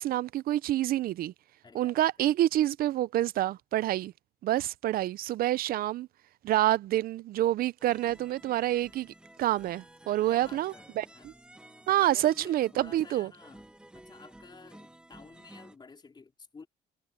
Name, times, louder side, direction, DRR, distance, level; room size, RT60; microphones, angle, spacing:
voice 1, 0.0-1.3 1.7-4.1 4.4-6.1 6.4-9.1 9.4-11.3 11.9-13.3, right 14 dB, 60° right, 0.5 m, -27 dB
voice 2, 1.6-2.1 10.3-11.3 12.1-13.6 13.9-16.7, left 4 dB, 25° left, 4.1 m, -52 dB
sound 1, 7.8-15.8, right 1 dB, 5° right, 1.2 m, -54 dB
cardioid pair, 110°, 17 cm